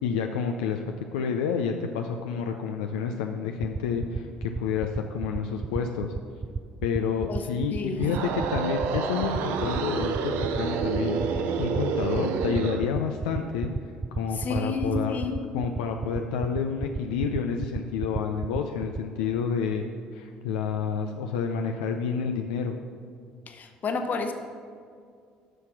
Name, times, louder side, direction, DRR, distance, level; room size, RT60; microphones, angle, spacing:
voice 1, 0.0-0.8 1.1-6.1 6.8-13.7 14.1-15.2 15.5-19.8 20.1-22.7, left 6 dB, 80° left, 4 dB, 0.4 m, -29 dB
sound 1, 3.6-19.0, right 4 dB, 25° right, 0.3 m, -31 dB
voice 2, 7.7-8.0 14.3-15.4 23.5-24.3, left 3 dB, 45° left, 6 dB, 1.0 m, -30 dB
sound 2, 7.9-12.9, right 6 dB, 70° right, 0.6 m, -29 dB
8.1 x 5.9 x 5.9 m, 2.2 s
hypercardioid pair, 60°, 4 cm